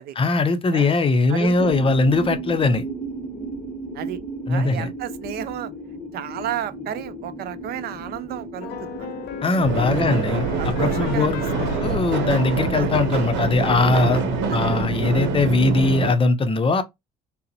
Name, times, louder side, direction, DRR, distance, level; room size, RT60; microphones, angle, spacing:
voice 1, 0.2-2.8 4.5-4.9 9.4-14.2 14.5-16.8, left 3 dB, 30° left, 0.6 m, -21 dB
voice 2, 1.3-1.7 3.9-4.2 4.5-5.7 6.1-9.1 10.0-10.2 10.6-11.5 11.7-11.8 12.7-12.9 14.5-14.7, right 11 dB, 60° right, 0.4 m, -32 dB
sound 1, 1.6-15.3, right 2 dB, 5° left, 1.0 m, -35 dB
sound 2, 8.6-13.7, left 8 dB, 70° left, 0.6 m, -37 dB
sound 3, 9.6-16.1, right 4 dB, 80° right, 0.8 m, -25 dB
3.7 x 2.0 x 2.7 m
supercardioid pair, 75°, 18 cm